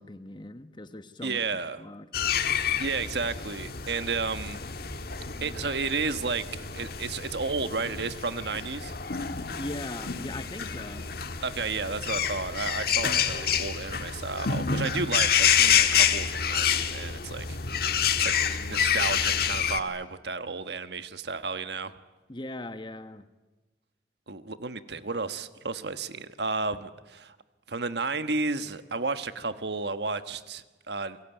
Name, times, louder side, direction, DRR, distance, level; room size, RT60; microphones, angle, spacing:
voice 1, 0.0-1.4 1.8-2.1 9.6-11.1 22.3-23.2, left 1 dB, 25° left, 11 dB, 1.2 m, -39 dB
voice 2, 1.2-1.8 2.8-4.6 5.4-8.9 11.4-21.9 24.3-27.3 27.7-31.2, right 4 dB, 65° right, 11 dB, 1.3 m, -32 dB
sound 1, 2.1-19.8, left 8 dB, 55° left, 1.6 m, -28 dB
29.0 x 22.5 x 9.1 m, 1.2 s
head